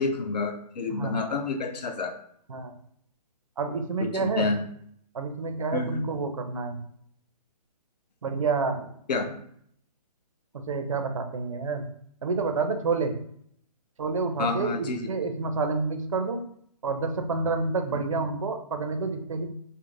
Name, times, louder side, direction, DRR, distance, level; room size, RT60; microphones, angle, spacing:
voice 1, 0.0-2.2 4.0-4.6 5.7-6.0 9.1-9.2 14.4-15.1 17.9-18.1, left 3 dB, 75° left, 6 dB, 0.5 m, -29 dB
voice 2, 3.6-4.5 5.1-6.8 8.2-8.9 10.5-11.9 12.2-13.2 14.0-16.4 16.8-19.5, right 4 dB, 50° right, 6 dB, 0.4 m, -29 dB
2.5 x 2.0 x 3.0 m, 0.67 s
hypercardioid pair, 180°, 21 cm